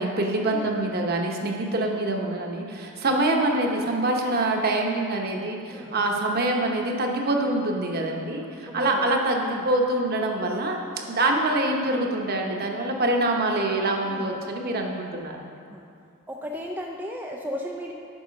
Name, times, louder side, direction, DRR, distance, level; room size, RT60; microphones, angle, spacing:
voice 1, 0.0-10.8 11.1-15.5, right 2 dB, 45° right, 1 dB, 0.9 m, -25 dB
voice 2, 8.7-9.1 9.4-9.7 14.0-14.4 15.7-15.9 16.3-17.9, equal, 10° right, -1 dB, 0.4 m, -35 dB
8.6 x 6.0 x 5.2 m, 2.4 s
head